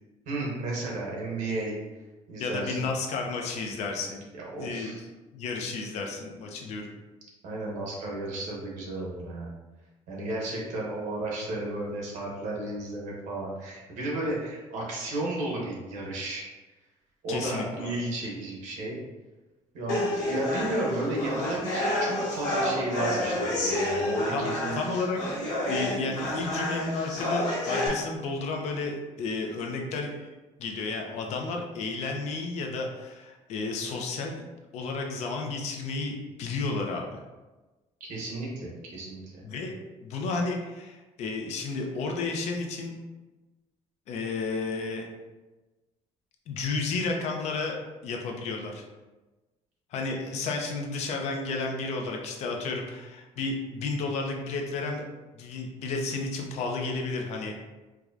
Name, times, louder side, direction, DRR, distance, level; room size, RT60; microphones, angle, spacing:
voice 1, 0.3-1.8 2.3-2.9 4.5-5.0 7.4-9.5 10.1-16.4 17.2-19.0 19.7-24.7 38.0-39.2, right 2 dB, 85° right, -3 dB, 1.1 m, -33 dB
voice 2, 2.4-4.3 4.6-5.0 5.3-6.9 17.3-17.9 24.3-25.2 25.7-30.3 30.6-34.5 34.7-37.2 39.4-39.7 40.0-42.9 44.1-45.1 46.5-47.8 48.0-48.8 49.9-55.0 55.3-57.6, left 3 dB, 60° left, 2 dB, 0.5 m, -32 dB
sound 1, 19.9-27.9, left 1 dB, 75° left, 1.3 m, -29 dB
4.6 x 2.2 x 2.5 m, 1.2 s
cardioid pair, 175°, 13 cm